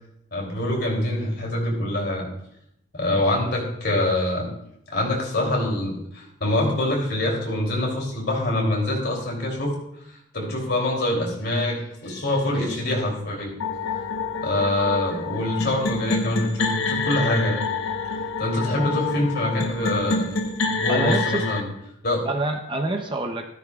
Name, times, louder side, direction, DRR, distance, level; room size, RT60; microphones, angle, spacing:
voice 1, 0.3-2.3 2.9-4.5 4.9-9.7 10.3-13.5 14.4-17.6 18.4-20.3 20.8-21.7 22.0-22.2, left 1 dB, 55° left, -1 dB, 3.0 m, -24 dB
sound 1, 13.6-21.6, left 3 dB, 90° left, 1.0 m, -27 dB
voice 2, 20.9-21.5 22.2-23.5, right 2 dB, 25° right, 4 dB, 0.7 m, -27 dB
13.5 x 13.0 x 2.4 m, 0.77 s
head